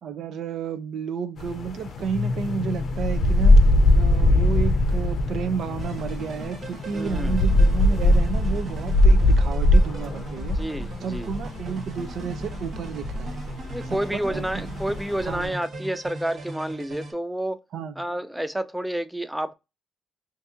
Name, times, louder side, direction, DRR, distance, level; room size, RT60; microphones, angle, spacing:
voice 1, 0.0-3.7 4.0-10.6 11.0-13.4 13.9-14.7 15.3-15.6 17.7-18.0, right 6 dB, 70° right, 0.5 m, -31 dB
sound 1, 1.4-15.5, left 1 dB, 55° left, 0.5 m, -21 dB
sound 2, 5.8-17.1, right 2 dB, 50° right, 1.1 m, -39 dB
voice 2, 6.9-7.4 10.6-11.3 13.7-17.6 18.0-19.5, right 1 dB, 5° right, 0.3 m, -29 dB
2.7 x 2.6 x 3.4 m
cardioid pair, 90°, 0 cm